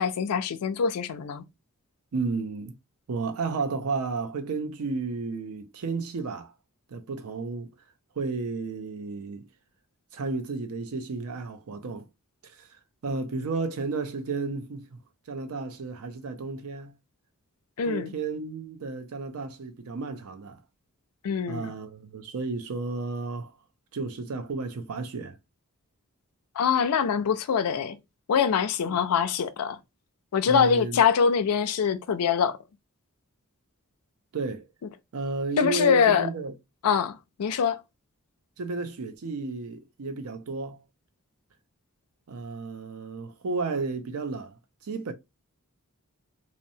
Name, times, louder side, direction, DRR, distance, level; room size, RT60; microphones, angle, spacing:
voice 1, 0.0-1.4 17.8-18.1 21.2-21.7 26.6-28.0 28.3-29.8 30.3-32.6 35.6-36.3 36.8-37.8, left 6 dB, 90° left, 0.4 m, -24 dB
voice 2, 2.1-2.8 3.1-6.5 6.9-7.7 8.2-9.5 10.1-12.1 12.4-15.0 15.3-16.9 17.8-20.6 21.5-23.5 23.9-25.4 28.9-29.0 30.5-31.0 34.3-34.7 35.1-36.5 38.6-40.8 42.3-45.1, right 4 dB, 70° right, 0.5 m, -33 dB
2.8 x 2.0 x 2.6 m
head